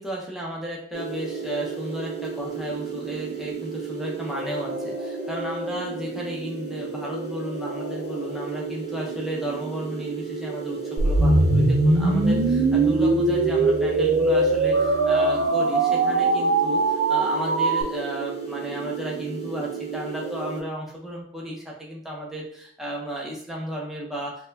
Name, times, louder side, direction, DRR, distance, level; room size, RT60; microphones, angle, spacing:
voice 1, 0.0-24.5, right 1 dB, ahead, -4 dB, 0.6 m, -33 dB
sound 1, 0.9-20.6, right 4 dB, 40° left, 1.1 m, -33 dB
sound 2, 11.0-17.8, right 3 dB, 70° right, 0.3 m, -21 dB
sound 3, 11.2-15.5, left 2 dB, 60° left, 0.6 m, -28 dB
4.1 x 2.1 x 2.6 m, 0.63 s
head